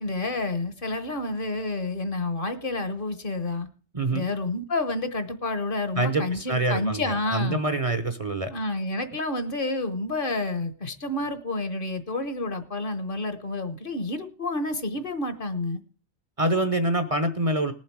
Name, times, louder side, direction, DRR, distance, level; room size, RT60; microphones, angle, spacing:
voice 1, 0.0-3.7 4.1-7.6 8.5-15.8, left 2 dB, 55° left, 11 dB, 1.3 m, -29 dB
voice 2, 3.9-4.3 6.0-8.5 16.4-17.7, right 2 dB, 35° right, 10 dB, 0.8 m, -25 dB
19.0 x 7.3 x 4.6 m, 0.38 s
omnidirectional pair, 1.2 m